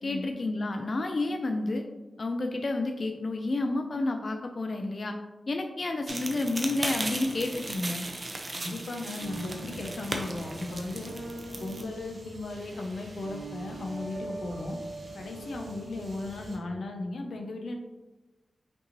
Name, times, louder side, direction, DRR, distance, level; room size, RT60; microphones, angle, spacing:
voice 1, 0.0-1.8 2.2-5.2 5.5-8.1, left 2 dB, 45° left, 4 dB, 0.3 m, -30 dB
sound 1, 6.1-11.8, right 2 dB, 35° right, 0.5 m, -36 dB
voice 2, 8.5-11.1 11.6-14.8 15.1-17.8, left 2 dB, 85° left, 3 dB, 0.6 m, -36 dB
sound 2, 9.2-16.6, right 2 dB, 85° right, 1.0 m, -42 dB
5.2 x 2.7 x 2.9 m, 1.1 s
wide cardioid pair, 115°, 0 cm